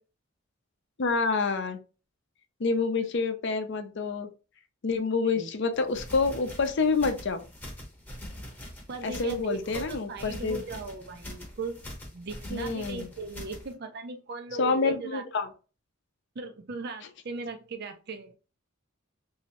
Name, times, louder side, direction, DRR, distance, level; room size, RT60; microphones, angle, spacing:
voice 1, 1.0-1.8 2.6-4.3 4.8-7.4 9.0-10.6 12.5-13.0 14.6-15.5, left 4 dB, 60° left, 0.5 m, -27 dB
sound 1, 5.7-13.7, left 1 dB, 10° left, 0.8 m, -43 dB
voice 2, 8.9-11.8 12.1-15.2 16.4-18.4, right 4 dB, 50° right, 0.5 m, -38 dB
3.1 x 2.7 x 2.9 m
head